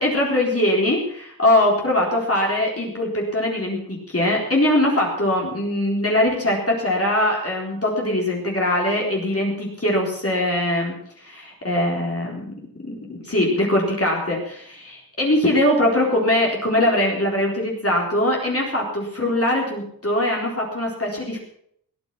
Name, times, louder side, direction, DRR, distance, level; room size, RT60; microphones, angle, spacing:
voice 1, 0.0-12.5 12.8-21.4, left 1 dB, 40° left, -2 dB, 4.0 m, -22 dB
17.5 x 9.7 x 5.9 m, 0.68 s
wide cardioid pair, 65°, 36 cm